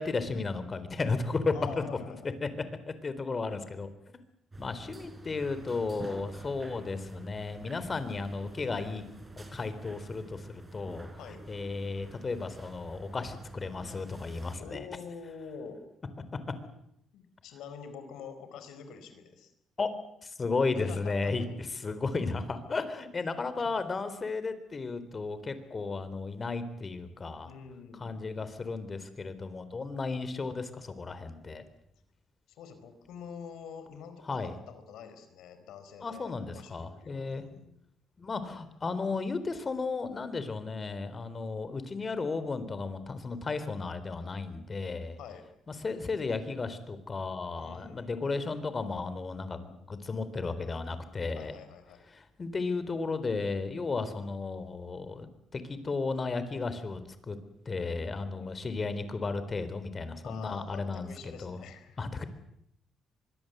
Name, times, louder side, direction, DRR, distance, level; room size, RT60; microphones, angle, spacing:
voice 1, 0.0-2.1 2.4-2.5 2.9-3.9 4.6-9.0 9.4-11.1 11.5-14.8 19.8-19.9 20.2-21.4 21.8-27.5 28.0-31.7 34.3-34.5 36.0-37.5 38.2-45.2 45.8-51.5 52.1-57.0 57.3-57.4 57.7-61.6 62.0-62.2, left 4 dB, 35° left, 12 dB, 3.8 m, -34 dB
voice 2, 1.5-2.3 11.2-11.4 14.6-15.8 17.1-19.5 20.7-21.5 23.6-23.7 27.4-28.3 32.5-37.7 45.2-45.5 47.5-48.2 51.4-52.0 58.2-58.7 60.2-62.0, left 6 dB, 85° left, 9 dB, 4.6 m, -46 dB
sound 1, 4.5-14.6, right 2 dB, 25° right, 5.5 m, -47 dB
25.0 x 22.0 x 8.0 m, 0.74 s
cardioid pair, 90°, 0 cm